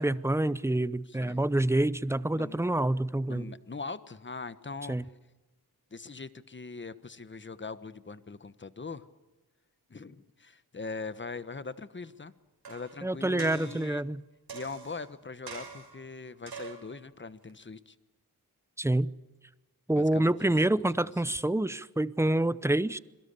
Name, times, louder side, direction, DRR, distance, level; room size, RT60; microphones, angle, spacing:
voice 1, 0.0-3.5 4.9-5.0 13.0-14.2 18.8-19.1 19.9-23.0, right 1 dB, 5° right, 0.7 m, -27 dB
voice 2, 1.1-1.4 2.3-2.6 3.3-5.0 5.9-9.0 9.9-12.3 12.7-14.0 14.5-17.9 19.9-20.6 21.0-21.4, left 4 dB, 30° left, 1.3 m, -41 dB
sound 1, 12.6-13.0 13.4-13.9 14.5-15.1 15.5-16.0 16.5-16.9 17.5-17.6, right 6 dB, 90° right, 5.9 m, -44 dB
26.5 x 22.5 x 6.8 m
wide cardioid pair, 105°, 38 cm